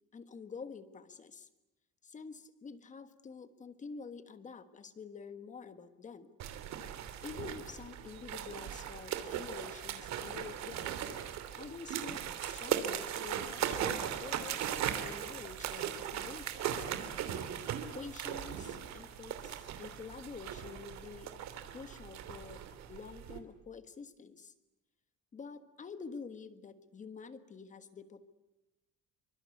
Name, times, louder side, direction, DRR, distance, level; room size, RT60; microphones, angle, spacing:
voice 1, 0.1-1.5 2.0-6.3 7.2-11.0 11.5-16.8 17.9-21.3 21.7-24.5 25.3-28.3, left 5 dB, 25° left, 11 dB, 1.5 m, -48 dB
sound 1, 6.4-23.4, right 9 dB, 60° right, 3.0 m, -38 dB
27.0 x 24.5 x 8.4 m, 0.95 s
cardioid pair, 175°, 31 cm